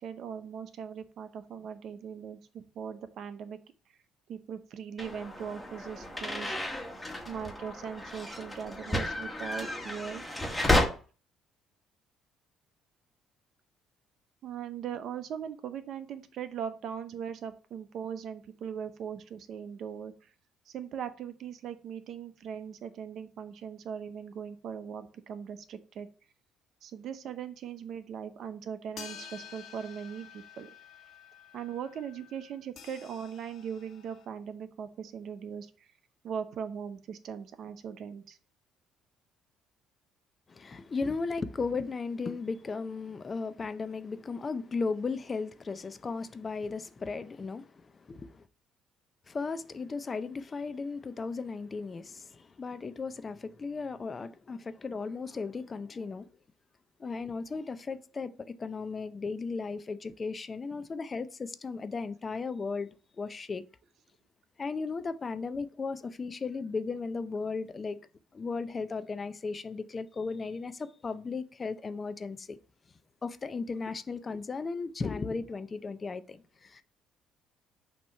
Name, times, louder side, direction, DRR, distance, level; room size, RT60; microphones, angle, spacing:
voice 1, 0.0-3.6 4.3-6.6 7.3-10.2 14.4-20.1 20.7-26.1 26.8-30.7 31.5-35.7 36.2-38.4, right 7 dB, 65° right, 0.8 m, -39 dB
sound 1, 5.0-10.8, left 1 dB, 10° left, 1.3 m, -32 dB
sound 2, 29.0-34.3, left 8 dB, 65° left, 1.2 m, -50 dB
voice 2, 40.5-48.4 49.3-56.3 57.0-63.6 64.6-68.0 68.3-72.6 73.2-76.8, left 4 dB, 35° left, 0.5 m, -36 dB
6.1 x 2.9 x 5.5 m
supercardioid pair, 85°, 0 cm